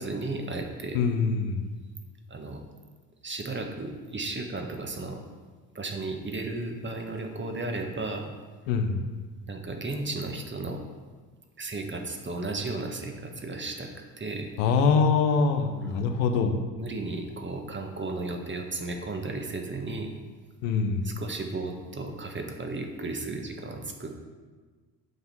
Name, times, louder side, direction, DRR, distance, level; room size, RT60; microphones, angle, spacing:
voice 1, 0.0-1.0 2.3-2.6 3.2-5.2 5.7-8.3 9.5-10.8 11.6-13.9 14.2-14.5 15.7-16.0 16.8-20.1 21.0-24.1, right 2 dB, 25° right, 3 dB, 1.5 m, -34 dB
voice 2, 0.9-1.6 8.7-9.0 14.6-16.6 20.6-21.1, left 5 dB, 70° left, 6 dB, 1.0 m, -24 dB
7.9 x 5.7 x 5.4 m, 1.4 s
hypercardioid pair, 50°, 45 cm